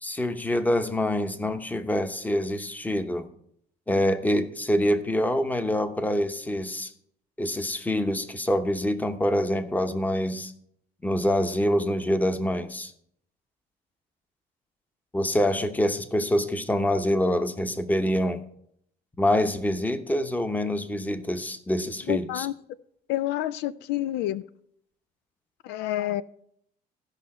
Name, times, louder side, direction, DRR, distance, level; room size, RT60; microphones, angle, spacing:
voice 1, 0.0-3.3 3.9-6.9 7.4-10.5 11.0-12.9 15.1-18.4 19.2-22.5, left 1 dB, 10° left, 0.9 m, -25 dB
voice 2, 22.1-22.5 23.1-24.4 25.6-26.2, left 14 dB, 85° left, 0.4 m, -28 dB
15.0 x 5.6 x 4.3 m
cardioid pair, 110°, 17 cm